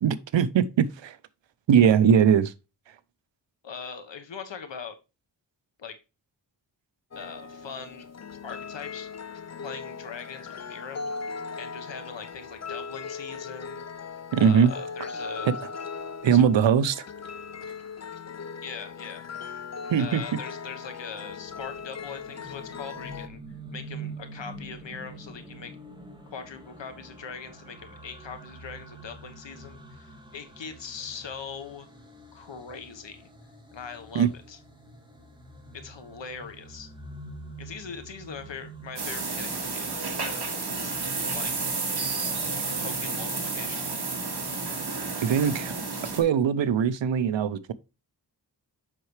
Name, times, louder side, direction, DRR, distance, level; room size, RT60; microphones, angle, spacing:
voice 1, 0.0-1.2 1.7-2.5 14.3-14.7 16.2-17.1 19.9-20.4 34.1-34.3 45.2-45.7 46.1-47.7, right 8 dB, 85° right, 0.6 m, -21 dB
voice 2, 3.6-5.0 5.8-6.0 7.1-8.1 8.4-9.1 9.6-11.1 11.6-13.8 14.4-15.5 16.2-16.4 18.6-19.2 20.0-23.4 23.7-25.7 26.3-31.9 32.3-33.3 33.7-34.6 35.7-36.9 37.6-41.0 41.3-41.5 42.5-43.9, left 6 dB, 85° left, 1.2 m, -41 dB
sound 1, 7.1-23.3, left 5 dB, 40° left, 0.6 m, -39 dB
sound 2, 21.2-39.0, right 2 dB, 10° right, 1.9 m, -46 dB
sound 3, 39.0-46.2, right 3 dB, 60° right, 2.2 m, -31 dB
7.5 x 5.7 x 3.2 m
wide cardioid pair, 70°, 43 cm